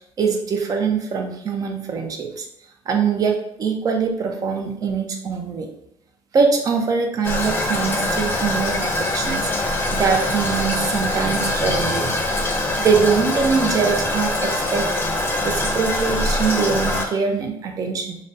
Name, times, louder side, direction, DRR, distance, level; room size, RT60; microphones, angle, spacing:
voice 1, 0.2-2.5 2.9-5.7 6.3-9.5 9.9-12.0 12.8-14.9 15.4-18.2, right 5 dB, 35° right, 3 dB, 0.6 m, -22 dB
Toilet flush, 7.2-17.0, left 1 dB, 20° left, 0.7 m, -23 dB
3.9 x 2.1 x 3.9 m, 0.77 s
cardioid pair, 130°, 10 cm